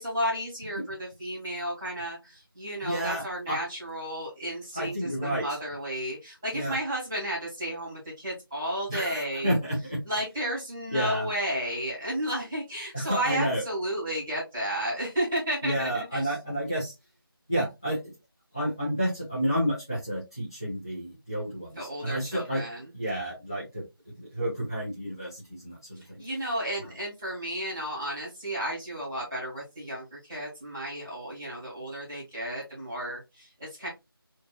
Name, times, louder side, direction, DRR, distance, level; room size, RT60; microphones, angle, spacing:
voice 1, 0.0-9.6 10.0-16.3 21.7-22.9 26.0-33.9, equal, 5° right, -11 dB, 1.1 m, -33 dB
voice 2, 2.8-3.6 4.7-5.4 6.5-6.8 8.9-10.0 10.9-11.3 12.9-13.6 15.6-16.9 17.5-18.1 18.5-22.6 22.9-26.2, equal, 10° left, -10 dB, 0.5 m, -30 dB
4.9 x 2.7 x 2.3 m, 0.22 s
figure-of-eight pair, 175°, 12 cm